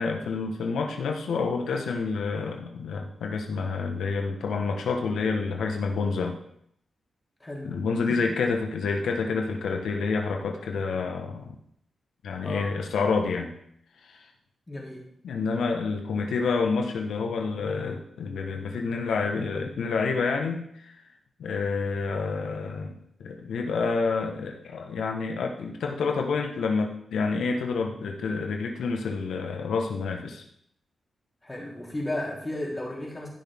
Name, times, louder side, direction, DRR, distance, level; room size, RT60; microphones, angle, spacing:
voice 1, 0.0-6.4 7.6-11.5 12.2-13.5 14.1-14.2 15.2-20.9 21.4-30.4, left 4 dB, 90° left, 3 dB, 1.4 m, -28 dB
voice 2, 7.4-7.7 8.1-8.4 12.4-12.7 14.7-15.1 31.4-33.3, left 1 dB, 20° left, -3 dB, 3.5 m, -34 dB
15.0 x 6.2 x 3.7 m, 0.69 s
cardioid pair, 75°, 0 cm